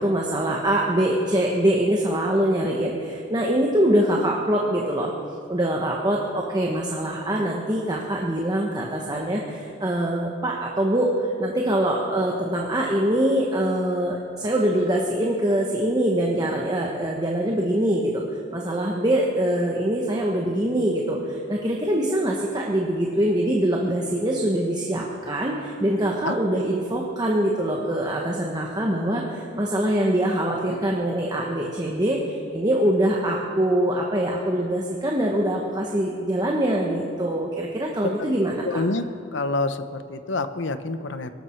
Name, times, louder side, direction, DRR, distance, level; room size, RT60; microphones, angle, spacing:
voice 1, 0.0-5.1 5.5-18.2 18.5-38.8, right 1 dB, 20° right, -1 dB, 1.2 m, -24 dB
voice 2, 38.6-39.0 39.3-41.3, left 2 dB, 70° left, 11 dB, 0.8 m, -27 dB
23.5 x 13.0 x 4.5 m, 2.4 s
head